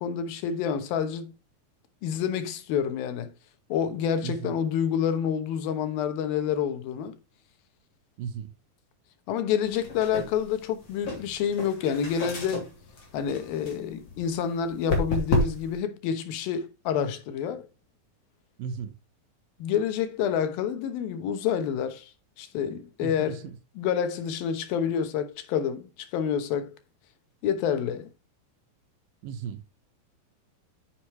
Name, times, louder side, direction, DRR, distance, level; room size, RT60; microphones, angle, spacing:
voice 1, 0.0-1.3 2.0-3.3 3.7-7.2 9.3-12.7 13.1-17.7 19.6-22.1 22.4-23.5 23.8-26.7 27.4-28.1, left 8 dB, 85° left, 2.9 m, -28 dB
voice 2, 4.2-4.5 8.2-8.5 18.6-18.9 23.0-23.4 29.2-29.6, right 7 dB, 75° right, 2.6 m, -35 dB
sound 1, 9.7-15.8, left 2 dB, 45° left, 3.5 m, -32 dB
9.5 x 7.2 x 3.2 m
omnidirectional pair, 4.1 m